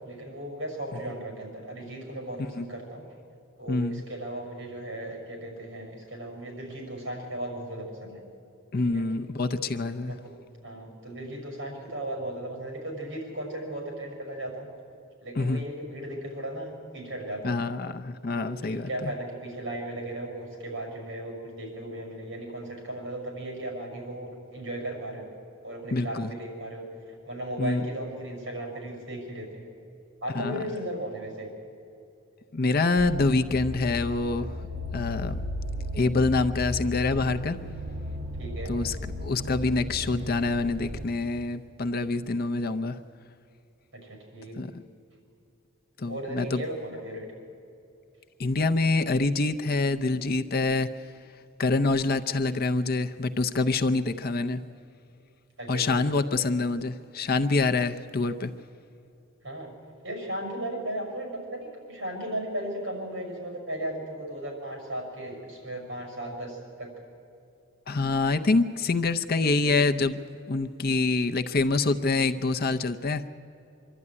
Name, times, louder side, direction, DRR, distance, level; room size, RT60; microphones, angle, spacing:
voice 1, 0.0-3.0 3.6-8.2 8.8-9.0 9.4-10.3 10.6-14.7 15.2-17.6 18.3-25.3 25.6-26.8 27.2-29.7 30.2-31.5 38.4-38.7 43.9-44.6 46.1-47.3 55.6-56.1 59.4-59.7 60.0-66.9, right 1 dB, 60° right, 2 dB, 6.1 m, -36 dB
voice 2, 3.7-4.0 8.7-10.1 15.4-15.6 17.4-19.1 25.9-26.3 27.6-27.9 30.3-30.6 32.5-34.6 34.9-35.4 35.9-37.6 38.7-39.0 39.2-43.0 44.6-44.8 46.0-46.6 48.4-50.9 51.6-54.6 55.7-58.5 67.9-70.2 70.5-73.2, left 3 dB, 45° left, 8 dB, 0.6 m, -26 dB
sound 1, 33.0-41.1, left 1 dB, 30° right, 2.4 m, -35 dB
24.5 x 12.5 x 9.7 m, 2.7 s
head